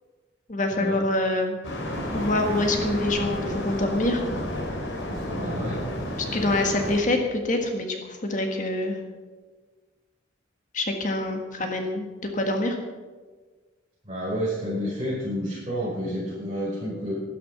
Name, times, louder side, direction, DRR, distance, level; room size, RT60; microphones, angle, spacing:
voice 1, 0.5-1.6 2.1-4.2 6.3-9.0 10.7-12.1 12.3-12.8, left 2 dB, 40° left, 4 dB, 1.6 m, -25 dB
sound 1, 1.6-7.0, left 1 dB, 70° left, 3.2 m, -31 dB
voice 2, 5.4-5.8 14.1-17.1, equal, 30° right, -9 dB, 5.6 m, -30 dB
12.5 x 12.5 x 5.9 m, 1.3 s
head